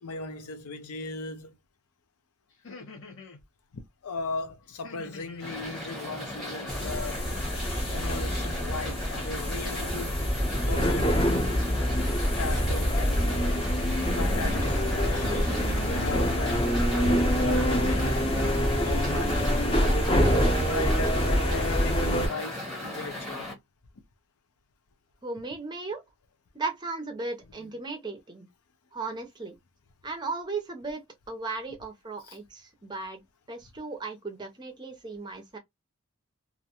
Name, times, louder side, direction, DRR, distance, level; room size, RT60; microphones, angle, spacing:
voice 1, 0.0-1.5 3.7-7.3 7.9-10.2 10.7-11.2 12.4-13.5 14.2-16.7 17.4-19.5 20.5-23.6 27.6-27.7 32.2-32.4, left 3 dB, 75° left, 0.6 m, -38 dB
sound 1, 2.5-3.4 4.8-5.5 6.8-7.5 8.8-9.4 10.8-11.5 12.3-12.7 13.2-14.0, left 3 dB, 60° left, 1.0 m, -47 dB
sound 2, 5.4-23.5, left 1 dB, ahead, 0.9 m, -37 dB
sound 3, 6.7-22.3, equal, 25° left, 0.7 m, -26 dB
voice 2, 25.2-26.0 26.5-28.5 28.9-29.6 30.0-33.2 33.5-35.6, right 3 dB, 20° right, 0.5 m, -36 dB
2.5 x 2.1 x 2.8 m
head